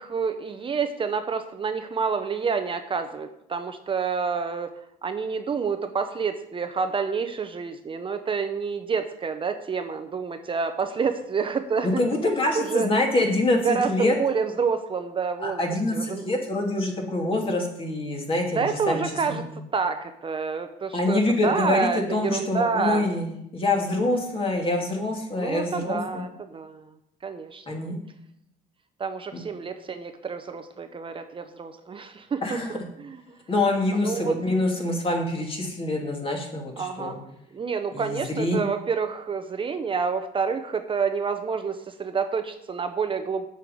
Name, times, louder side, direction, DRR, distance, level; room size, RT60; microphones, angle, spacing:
voice 1, 0.0-4.7 5.0-12.0 12.5-12.9 13.6-16.3 18.5-19.4 19.7-23.1 25.4-26.8 27.2-27.9 29.0-32.4 32.7-33.4 33.9-34.3 36.8-43.5, right 5 dB, 30° right, 7 dB, 0.8 m, -28 dB
voice 2, 11.8-14.2 15.4-19.4 20.9-26.2 27.7-28.0 32.4-32.8 33.5-37.2 37.9-38.6, left 2 dB, 35° left, 1 dB, 2.6 m, -25 dB
8.1 x 5.6 x 7.8 m, 0.78 s
cardioid pair, 110°, 17 cm